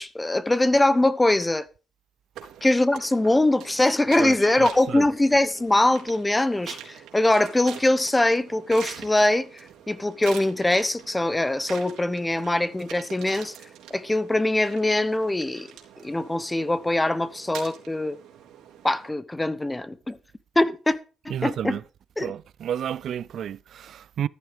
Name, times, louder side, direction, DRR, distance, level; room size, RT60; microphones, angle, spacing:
voice 1, 0.0-1.6 2.6-13.5 13.9-15.7 16.0-18.2 18.8-20.2 20.5-21.0 21.2-21.8 22.2-22.3, left 1 dB, 15° left, 1.0 m, -22 dB
sound 1, 2.4-19.1, right 9 dB, 85° right, 3.4 m, -44 dB
voice 2, 4.2-5.1 21.3-21.8 22.2-24.3, right 9 dB, 65° right, 0.5 m, -31 dB
14.0 x 11.0 x 3.6 m
cardioid pair, 90°, 0 cm